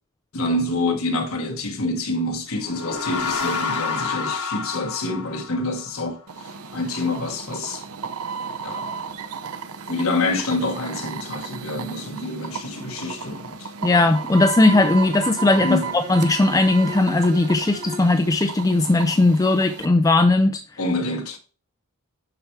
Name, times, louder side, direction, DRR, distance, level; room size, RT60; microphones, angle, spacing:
voice 1, 0.3-7.8 8.6-9.0 9.8-13.7 15.6-15.9 20.8-21.4, left 2 dB, 70° left, 1.4 m, -27 dB
sound 1, 2.5-6.0, left 5 dB, 85° left, 1.3 m, -28 dB
sound 2, 6.3-19.9, right 5 dB, 85° right, 0.6 m, -34 dB
voice 2, 13.8-20.6, left 2 dB, 15° left, 0.4 m, -18 dB
Bowed string instrument, 14.7-18.2, left 1 dB, 55° right, 2.1 m, -39 dB
10.5 x 4.6 x 3.2 m
head